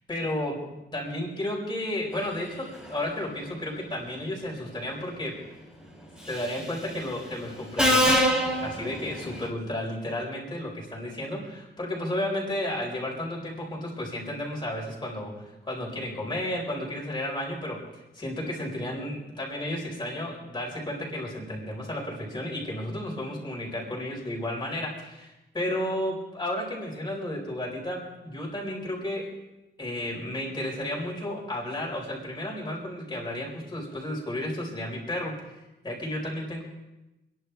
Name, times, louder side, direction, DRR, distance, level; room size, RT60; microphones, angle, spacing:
voice 1, 0.1-5.4 6.2-8.2 8.6-29.3 29.8-35.5 35.8-36.6, left 1 dB, 25° left, -3 dB, 4.8 m, -33 dB
Subway metro underground, 6.3-6.6 7.8-9.5, equal, 5° right, 4.0 m, -24 dB
28.5 x 11.0 x 3.5 m, 0.97 s
wide cardioid pair, 180°, 18 cm